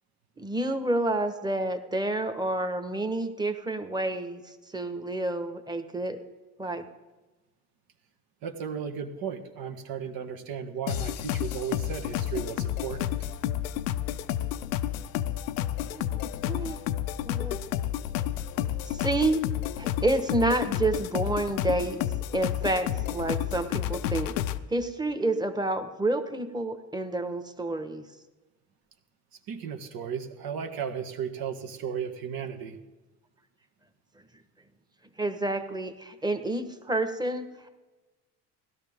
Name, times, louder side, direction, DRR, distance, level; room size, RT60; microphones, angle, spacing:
voice 1, 0.4-4.4 4.7-6.2 6.6-6.9 15.9-16.1 16.4-16.8 17.2-17.6 18.9-19.4 19.8-22.0 22.3-24.3 24.7-28.0 35.2-37.5, right 2 dB, 10° right, 8 dB, 1.3 m, -29 dB
voice 2, 8.4-13.1 29.5-32.8, right 7 dB, 65° right, 5 dB, 1.5 m, -35 dB
sound 1, 10.9-24.6, left 11 dB, 90° left, 0.6 m, -31 dB
16.5 x 12.5 x 3.6 m, 1.2 s
supercardioid pair, 75°, 38 cm